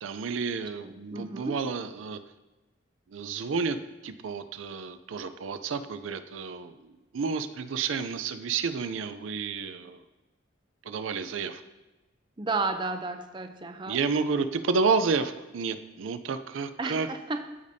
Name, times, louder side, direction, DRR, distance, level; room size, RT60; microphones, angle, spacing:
voice 1, 0.0-2.2 3.1-3.8 4.0-10.0 10.8-11.6 13.9-17.1, right 5 dB, 85° right, 10 dB, 0.5 m, -30 dB
voice 2, 0.8-1.6 12.4-14.0 16.8-17.4, right 3 dB, 25° right, 6 dB, 0.5 m, -32 dB
14.5 x 5.0 x 2.7 m, 1.1 s
head